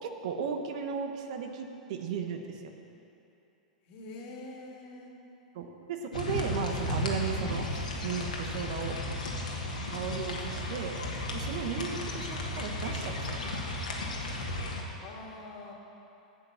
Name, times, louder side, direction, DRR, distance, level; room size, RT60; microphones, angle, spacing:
voice 1, 0.0-2.7 5.5-9.0 9.9-10.9 11.3-13.6, right 6 dB, 60° right, 5 dB, 1.0 m, -35 dB
voice 2, 3.8-5.2 11.2-11.4 14.8-15.7, left 2 dB, 50° left, -1 dB, 2.0 m, -45 dB
sound 1, 6.1-14.8, left 1 dB, 85° left, 1.5 m, -34 dB
8.6 x 7.7 x 6.8 m, 2.9 s
hypercardioid pair, 105°, 4 cm